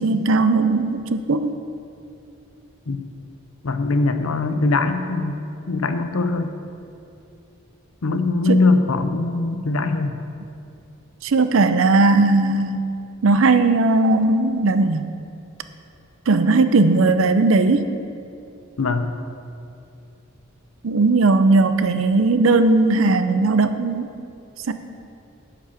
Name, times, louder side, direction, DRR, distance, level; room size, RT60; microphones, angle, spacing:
voice 1, 0.0-1.5 8.5-8.6 11.2-12.8 13.2-15.1 16.3-17.9 20.8-24.1 24.7-24.8, right 3 dB, 70° right, 10 dB, 0.5 m, -17 dB
voice 2, 3.6-5.4 5.7-6.5 8.0-10.2 18.8-19.1, left 3 dB, 80° left, 8 dB, 0.7 m, -21 dB
8.3 x 7.6 x 5.8 m, 2.6 s
head